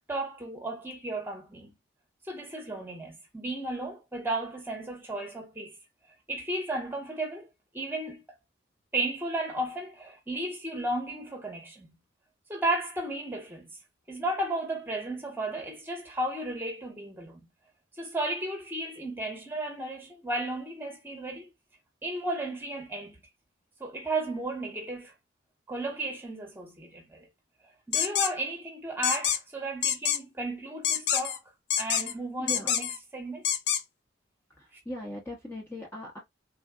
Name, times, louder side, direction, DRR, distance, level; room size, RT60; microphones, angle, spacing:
voice 1, 0.0-1.7 2.3-5.8 6.3-7.5 7.7-8.2 8.9-11.9 12.5-13.8 14.1-17.5 18.0-21.5 22.0-23.2 23.8-25.1 25.7-27.3 27.9-31.4 31.8-33.4, right 1 dB, 10° right, 1.0 m, -34 dB
sound 1, 27.9-28.3 29.0-29.4 29.8-30.2 30.8-31.4 31.7-32.1 32.5-33.0 33.4-33.8, left 9 dB, 55° left, 0.4 m, -26 dB
voice 2, 32.4-32.7 34.5-36.2, left 1 dB, 10° left, 0.7 m, -39 dB
3.6 x 2.3 x 2.3 m
head